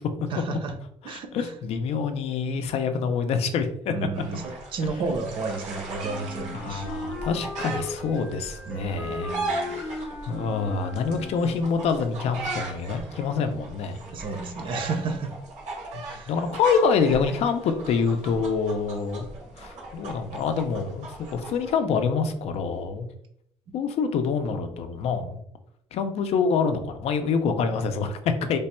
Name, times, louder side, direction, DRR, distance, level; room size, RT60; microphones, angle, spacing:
voice 1, 0.3-0.8 1.0-1.5 3.9-6.9 8.6-9.8 14.0-15.3 16.0-16.3, right 4 dB, 45° right, 5 dB, 0.6 m, -32 dB
voice 2, 1.0-3.9 4.3-4.4 6.5-9.4 9.7-14.0 16.3-19.3 19.6-23.1 23.7-25.4 25.9-28.6, left 5 dB, 60° left, 8 dB, 0.4 m, -26 dB
sound 1, 4.1-21.7, right 2 dB, 85° right, 1.5 m, -38 dB
Wind instrument woodwind instrument, 6.0-11.8, left 2 dB, 5° right, 0.7 m, -37 dB
3.3 x 2.2 x 4.2 m, 0.69 s
cardioid pair, 170°, 12 cm